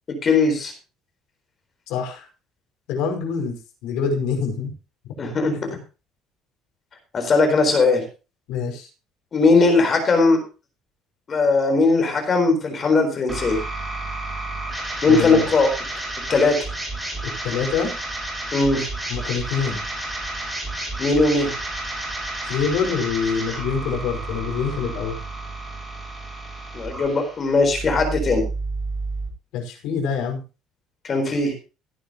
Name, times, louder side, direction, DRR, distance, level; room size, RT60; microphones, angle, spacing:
voice 1, 0.2-0.7 5.2-5.5 7.1-8.0 9.3-10.4 11.3-13.6 15.0-15.7 16.3-16.5 18.5-18.8 21.0-21.5 26.7-28.4 31.0-31.5, left 3 dB, 30° left, 5 dB, 4.3 m, -19 dB
voice 2, 1.9-2.3 2.9-3.6 3.8-4.7 5.5-5.6 8.5-8.9 15.1-15.5 17.2-17.9 19.1-19.8 22.5-25.2 29.5-30.4, left 6 dB, 80° left, 2 dB, 5.3 m, -25 dB
sound 1, 13.3-29.3, right 2 dB, 5° right, 6.1 m, -31 dB
17.0 x 10.0 x 3.1 m, 0.32 s
cardioid pair, 155°, 0 cm